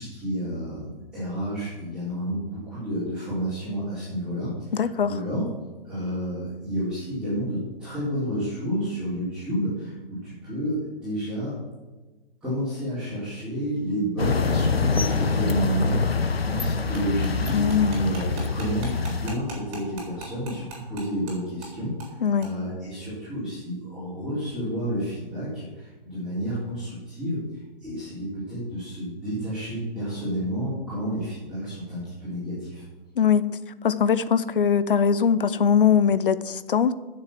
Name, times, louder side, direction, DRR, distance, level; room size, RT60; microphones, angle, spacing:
voice 1, 0.0-5.5 5.8-11.5 12.4-32.8, equal, 5° right, 4.2 m, -30 dB
voice 2, 4.7-5.1 17.5-18.0 22.2-22.5 33.2-33.4 33.8-36.9, left 7 dB, 65° left, 0.7 m, -21 dB
sound 1, 14.2-19.4, left 4 dB, 85° left, 0.9 m, -25 dB
sound 2, 16.9-21.3 21.6-21.7 22.0-22.1 22.4-22.5, right 3 dB, 25° right, 3.6 m, -39 dB
9.9 x 6.9 x 7.5 m
figure-of-eight pair, 135°, 29 cm